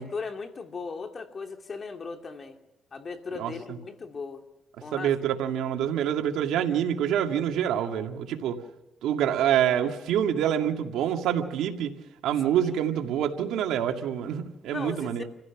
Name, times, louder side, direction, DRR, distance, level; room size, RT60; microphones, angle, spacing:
voice 1, 0.0-2.6 2.9-4.4 4.8-5.1 12.6-12.8 14.7-15.2, left 4 dB, 40° left, 2.7 m, -37 dB
voice 2, 4.9-8.6 9.0-11.9 12.2-15.2, right 9 dB, 85° right, 2.1 m, -26 dB
28.5 x 16.0 x 6.0 m
cardioid pair, 90°, 0 cm